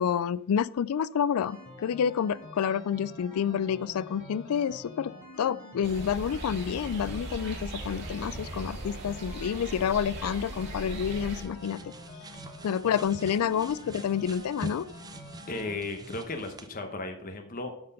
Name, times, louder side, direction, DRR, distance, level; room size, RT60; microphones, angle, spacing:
voice 1, 0.0-5.1 5.4-11.8 12.6-14.9, left 8 dB, 85° left, 19 dB, 0.3 m, -29 dB
sound 1, 1.4-15.7, left 1 dB, 65° left, 2.1 m, -47 dB
sound 2, 5.8-11.4, right 2 dB, 55° right, 2.0 m, -39 dB
sound 3, 10.2-16.7, right 2 dB, 15° right, 0.5 m, -46 dB
voice 2, 15.5-17.9, left 2 dB, 40° left, 5 dB, 1.0 m, -36 dB
13.0 x 4.4 x 5.3 m, 0.77 s
head